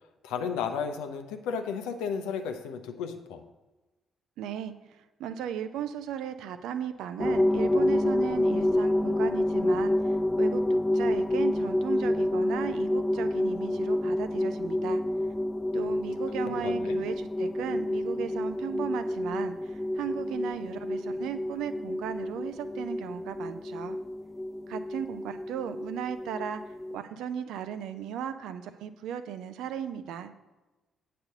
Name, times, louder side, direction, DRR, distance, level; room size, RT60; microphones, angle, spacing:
voice 1, 0.2-3.4 16.4-17.0, left 6 dB, 65° left, 6 dB, 0.7 m, -33 dB
voice 2, 4.4-15.0 15.7-24.0 24.7-26.6 26.9-30.3, right 9 dB, 65° right, 10 dB, 0.6 m, -36 dB
sound 1, 7.2-27.0, left 1 dB, 15° left, 0.3 m, -28 dB
8.7 x 4.3 x 6.6 m, 1.1 s
figure-of-eight pair, 40°, 0 cm